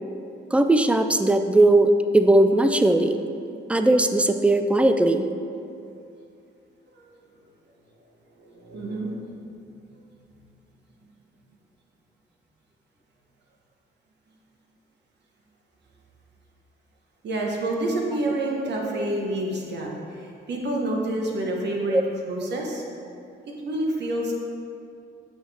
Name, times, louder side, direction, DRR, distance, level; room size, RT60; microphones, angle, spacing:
voice 1, 0.5-3.2 3.7-5.3 18.9-19.1 21.9-22.0, right 1 dB, 5° right, 8 dB, 0.4 m, -19 dB
voice 2, 8.4-9.2 9.7-9.8 17.2-22.0 22.3-22.8 23.5-24.3, right 1 dB, 60° right, -1 dB, 1.4 m, -28 dB
7.8 x 6.1 x 3.4 m, 2.6 s
cardioid pair, 90°, 20 cm